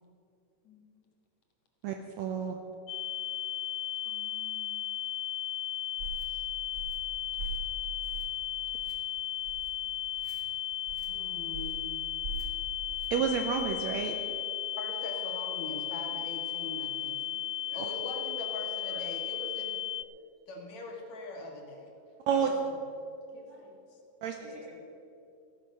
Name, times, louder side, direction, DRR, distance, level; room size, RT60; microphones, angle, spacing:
voice 1, 0.6-1.1 4.1-4.8 6.2-6.5 11.1-12.0 14.8-17.4 17.7-19.8 20.5-21.9 22.4-22.5 23.3-24.0 24.3-24.8, left 2 dB, 65° left, 1 dB, 2.8 m, -43 dB
voice 2, 1.8-2.6 13.1-14.2 22.3-22.5 24.2-24.4, right 7 dB, 75° right, 5 dB, 1.7 m, -29 dB
sound 1, 2.9-20.0, left 12 dB, 80° left, 1.6 m, -35 dB
sound 2, 6.0-6.3 6.7-7.0 7.4-7.7 8.0-8.4 8.7-9.0 9.4-9.7 10.2-10.4 10.9-11.1 11.5-11.8 12.2-12.5 12.9-13.1 13.5-13.8, right 4 dB, 35° right, 2.3 m, -41 dB
voice 3, 24.4-24.8, right 2 dB, 55° right, -1 dB, 3.1 m, -49 dB
15.0 x 9.9 x 6.5 m, 2.7 s
omnidirectional pair, 3.7 m